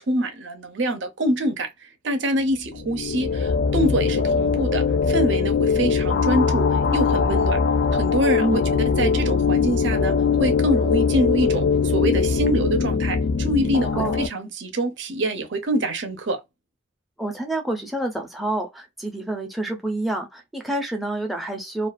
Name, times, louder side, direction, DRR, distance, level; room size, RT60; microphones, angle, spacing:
voice 1, 0.0-1.7 2.0-7.6 7.9-8.6 9.0-16.4, right 1 dB, 70° right, 0.7 m, -25 dB
sound 1, 2.7-14.3, left 5 dB, 70° left, 0.4 m, -21 dB
voice 2, 8.4-8.7 13.9-14.2 17.2-21.9, right 1 dB, ahead, 0.5 m, -28 dB
2.4 x 2.4 x 2.3 m
head